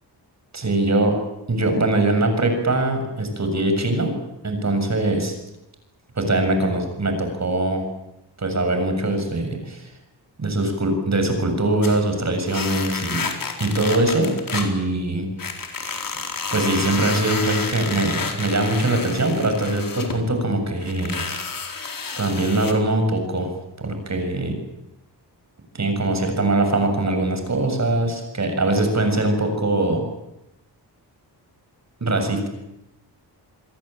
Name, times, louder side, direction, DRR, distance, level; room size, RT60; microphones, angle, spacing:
voice 1, 0.5-1.2 1.5-4.1 4.4-5.3 6.2-7.8 8.4-9.9 10.4-13.2 13.6-15.3 15.7-16.2 16.5-21.4 22.2-23.5 23.8-24.6 25.7-30.0 32.0-32.5, right 2 dB, 40° right, 6 dB, 7.1 m, -22 dB
sound 1, 11.8-12.1 12.5-14.7 15.4-20.2 20.8-22.7, left 4 dB, 50° left, 4.4 m, -30 dB
28.5 x 22.0 x 9.1 m, 0.89 s
wide cardioid pair, 125°, 42 cm